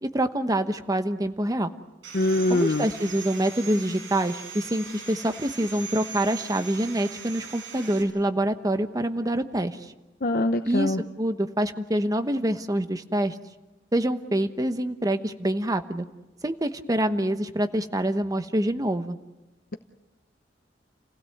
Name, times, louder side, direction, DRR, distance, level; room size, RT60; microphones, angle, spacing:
voice 1, 0.0-1.7 2.5-9.9 10.6-13.4 13.9-16.1 16.4-19.2, right 1 dB, 20° right, 8 dB, 1.0 m, -26 dB
Sawing, 2.0-8.0, right 6 dB, 85° right, 5.5 m, -40 dB
voice 2, 2.1-2.8 10.2-11.0, left 2 dB, 50° left, 7 dB, 0.8 m, -23 dB
29.5 x 16.5 x 7.9 m, 1.1 s
head